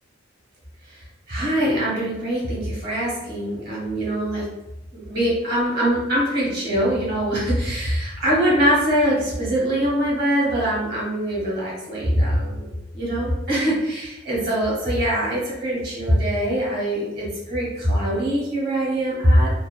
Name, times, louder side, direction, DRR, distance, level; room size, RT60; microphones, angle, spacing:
voice 1, 1.3-4.5 4.9-12.7 12.9-19.5, equal, 50° right, -5 dB, 1.2 m, -22 dB
2.7 x 2.3 x 2.2 m, 0.95 s
head